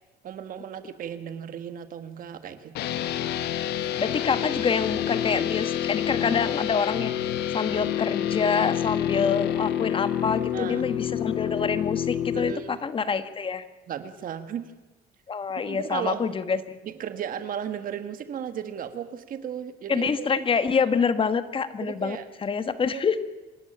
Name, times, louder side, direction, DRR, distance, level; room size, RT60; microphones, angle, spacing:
voice 1, 0.2-2.9 10.5-10.9 12.3-12.8 13.9-14.7 15.7-16.2 16.8-20.5 21.8-22.3 22.9-23.1, right 9 dB, 55° right, 10 dB, 1.5 m, -35 dB
sound 1, 2.7-12.5, left 10 dB, 80° left, 1.2 m, -28 dB
voice 2, 4.0-13.6 15.3-16.8 19.9-23.2, left 5 dB, 30° left, 12 dB, 1.4 m, -26 dB
26.5 x 12.0 x 8.7 m, 1.1 s
cardioid pair, 110°, 17 cm